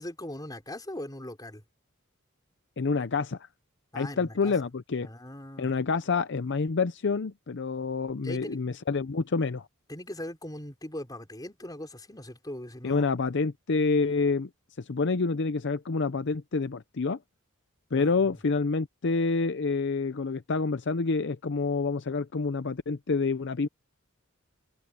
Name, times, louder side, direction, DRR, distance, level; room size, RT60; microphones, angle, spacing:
voice 1, 0.0-1.6 3.9-4.6 5.0-5.8 8.2-8.6 9.9-13.1 17.9-18.3, left 1 dB, 20° left, 4.2 m, -40 dB
voice 2, 2.8-3.5 3.9-5.1 5.6-9.7 12.8-14.5 14.8-17.2 17.9-23.7, left 4 dB, 55° left, 0.6 m, -28 dB
head